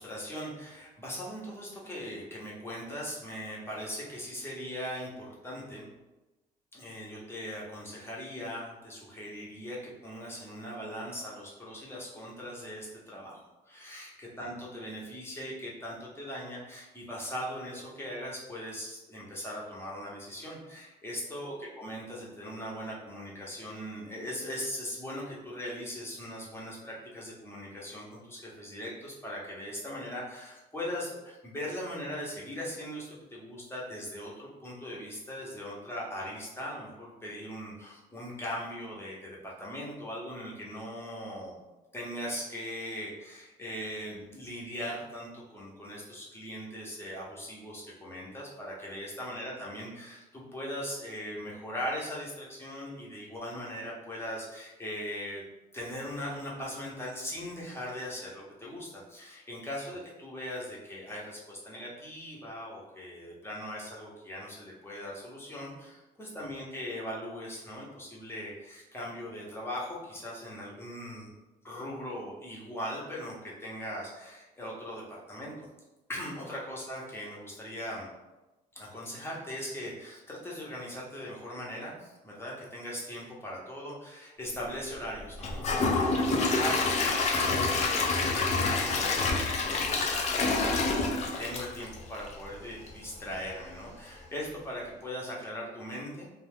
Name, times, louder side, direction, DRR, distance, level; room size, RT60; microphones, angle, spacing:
voice 1, 0.0-5.9 6.7-13.4 13.7-41.6 41.9-55.4 55.7-71.3 71.6-75.7 76.1-78.1 78.7-90.7 91.2-96.3, equal, 15° left, -4 dB, 0.9 m, -40 dB
Gurgling / Toilet flush / Trickle dribble, 85.4-92.4 92.9-93.0 93.4-93.5, left 3 dB, 40° left, 0.5 m, -27 dB
2.4 x 2.3 x 3.4 m, 1.1 s
cardioid pair, 110°, 17 cm